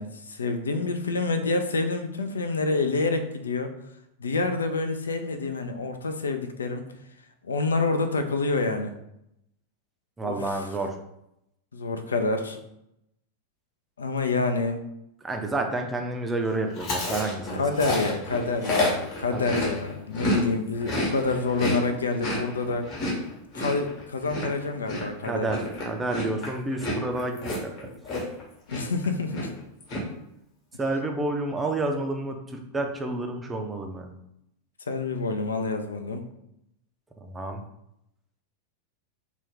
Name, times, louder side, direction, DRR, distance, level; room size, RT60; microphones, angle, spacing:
voice 1, 0.0-3.7 4.2-6.9 7.4-8.9 10.2-10.6 11.7-12.6 14.0-14.9 17.6-22.9 23.5-25.5 28.7-29.5 34.9-36.2, left 3 dB, 70° left, 8 dB, 0.3 m, -27 dB
voice 2, 10.2-11.0 15.2-17.9 19.3-19.6 25.2-27.9 30.8-34.1 37.2-37.6, right 2 dB, 15° right, 4 dB, 0.4 m, -30 dB
Chewing mastication, 16.8-20.4 20.7-28.4 28.7-29.0 29.3-30.0, left 1 dB, 40° left, 1.1 m, -30 dB
2.5 x 2.3 x 3.6 m, 0.80 s
figure-of-eight pair, 90°, 0 cm